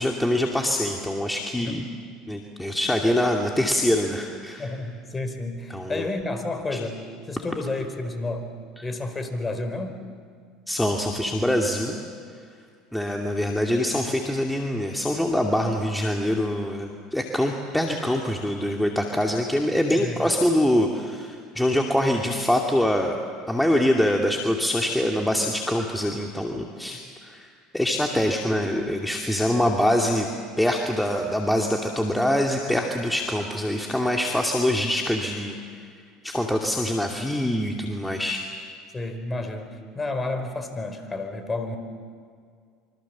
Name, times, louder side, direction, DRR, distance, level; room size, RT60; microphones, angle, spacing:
voice 1, 0.0-1.8 2.3-4.7 5.7-6.1 6.7-6.8 8.8-8.9 10.7-12.0 12.9-23.2 23.5-30.3 30.6-35.8 36.2-38.5, left 1 dB, 5° left, 1 dB, 2.5 m, -24 dB
voice 2, 4.6-8.5 8.8-10.0 20.0-20.2 26.9-27.0 29.6-29.7 36.5-36.6 38.9-41.8, left 2 dB, 20° left, 8 dB, 4.3 m, -31 dB
26.5 x 25.0 x 7.4 m, 2.1 s
hypercardioid pair, 80°, 0 cm